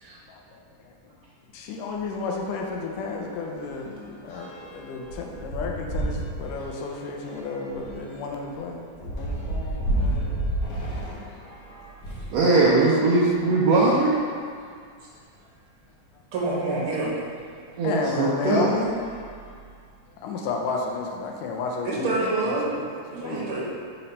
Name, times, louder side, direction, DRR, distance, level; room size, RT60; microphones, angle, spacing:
voice 1, 0.3-0.9 1.5-10.4 13.1-13.2 17.8-18.9 20.2-22.9 23.2-23.5, left 4 dB, 80° left, 1 dB, 2.1 m, -32 dB
sound 1, 1.9-2.1 2.5-2.6 2.9-12.4 13.1-14.5 15.1-15.2 15.5-15.6 17.3-17.4 18.0-18.2 18.7-20.0, right 1 dB, 60° left, 1.6 m, -33 dB
voice 2, 12.3-14.2 17.8-18.7, right 3 dB, 85° right, -6 dB, 1.5 m, -20 dB
voice 3, 16.3-17.1 21.8-22.7 23.1-23.6, right 2 dB, 50° right, -6 dB, 1.9 m, -27 dB
5.9 x 4.3 x 5.4 m, 2.1 s
omnidirectional pair, 3.9 m